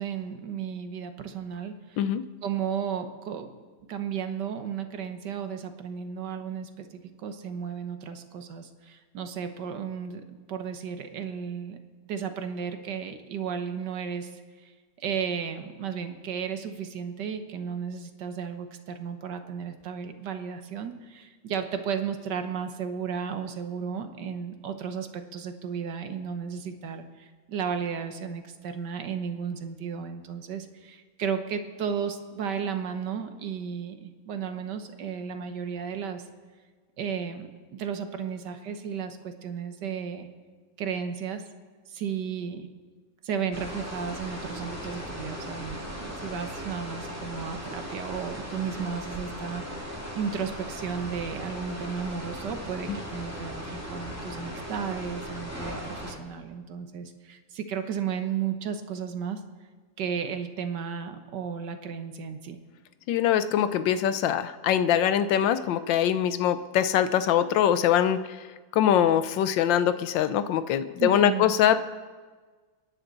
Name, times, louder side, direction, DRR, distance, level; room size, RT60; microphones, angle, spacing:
voice 1, 0.0-2.0 2.4-3.5 3.9-11.8 12.0-14.3 14.6-14.7 15.0-36.2 37.0-40.3 40.8-41.4 41.9-42.7 43.2-59.4 60.0-62.6 71.0-71.5, right 7 dB, 70° right, 7 dB, 1.6 m, -34 dB
sound 1, 43.5-56.2, equal, 10° right, 2.2 m, -38 dB
voice 2, 63.1-68.4 68.7-71.8, left 10 dB, 85° left, 12 dB, 1.4 m, -23 dB
29.0 x 10.5 x 4.0 m, 1.5 s
omnidirectional pair, 2.0 m